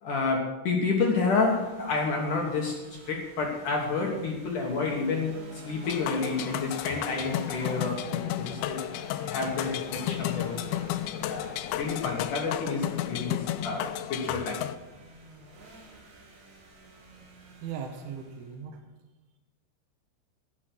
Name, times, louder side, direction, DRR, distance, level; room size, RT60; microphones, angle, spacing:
voice 1, 0.0-8.8 9.2-10.9 11.1-14.6, left 4 dB, 60° left, 0 dB, 2.2 m, -30 dB
sound 1, 0.7-18.6, right 2 dB, 45° right, 3.3 m, -49 dB
sound 2, 5.8-14.8, left 13 dB, 85° left, 3.0 m, -33 dB
voice 2, 17.6-18.8, right 7 dB, 85° right, 5 dB, 3.6 m, -38 dB
16.0 x 8.2 x 6.1 m, 1.1 s
omnidirectional pair, 5.4 m